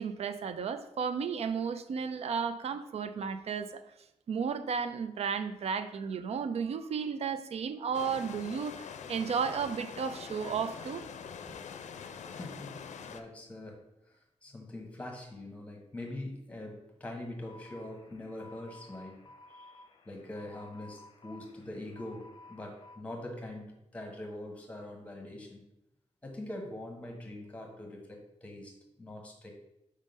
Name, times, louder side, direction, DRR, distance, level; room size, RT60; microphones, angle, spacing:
voice 1, 0.0-3.8 4.3-11.1, right 6 dB, 60° right, 0.4 m, -33 dB
sound 1, 7.9-13.2, left 6 dB, 85° left, 0.5 m, -44 dB
voice 2, 12.3-19.2 19.5-25.7 26.2-29.5, left 1 dB, 10° left, 1.2 m, -43 dB
sound 2, 17.4-23.0, left 2 dB, 40° left, 0.6 m, -54 dB
5.1 x 3.7 x 5.3 m
wide cardioid pair, 170°, 12 cm